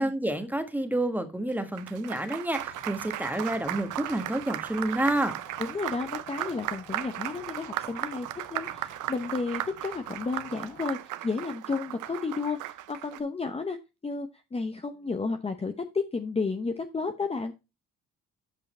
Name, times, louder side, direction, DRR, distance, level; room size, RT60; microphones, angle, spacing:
voice 1, 0.0-5.3, right 1 dB, 5° right, 7 dB, 1.4 m, -29 dB
Applause, 1.5-13.2, right 14 dB, 85° right, 0.6 m, -36 dB
sound 1, 2.6-10.8, left 6 dB, 85° left, 4.2 m, -52 dB
voice 2, 5.6-13.8 14.0-17.6, left 4 dB, 20° left, 6 dB, 0.8 m, -32 dB
7.6 x 5.6 x 4.2 m, 0.27 s
cardioid pair, 90°, 30 cm